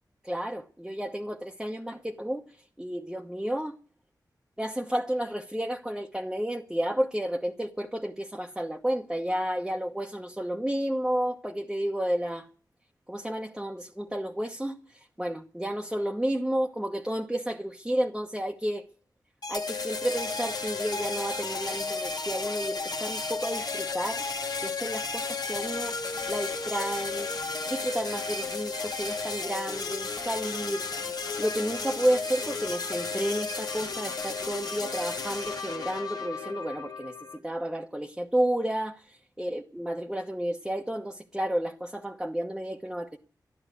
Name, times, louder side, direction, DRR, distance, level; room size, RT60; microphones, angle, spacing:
voice 1, 0.2-2.4 2.8-3.8 4.6-12.4 13.1-14.8 15.2-18.9 19.5-24.2 24.6-26.0 26.3-27.3 27.7-30.9 31.4-43.2, right 1 dB, 5° right, 1.1 m, -31 dB
sound 1, 19.4-37.4, left 4 dB, 65° left, 1.7 m, -33 dB
12.5 x 11.5 x 8.3 m
wide cardioid pair, 100°, 7 cm